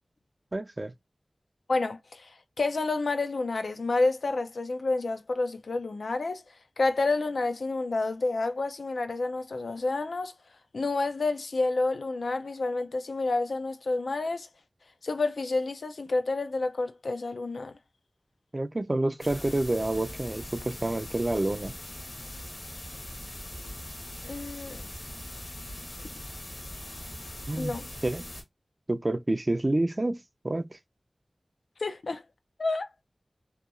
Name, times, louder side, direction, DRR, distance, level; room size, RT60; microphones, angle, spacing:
voice 1, 0.5-0.9 18.5-21.7 27.5-27.8 28.0-28.2 28.9-30.8, right 2 dB, 35° right, 0.3 m, -28 dB
voice 2, 1.7-6.4 6.8-10.3 10.7-14.5 15.0-17.7 24.2-24.8 27.6-27.9 31.8-32.2 32.6-32.9, left 3 dB, 90° left, 0.3 m, -29 dB
sound 1, 19.2-28.4, left 1 dB, 65° left, 1.1 m, -41 dB
2.8 x 2.3 x 2.4 m
wide cardioid pair, 65°, 0 cm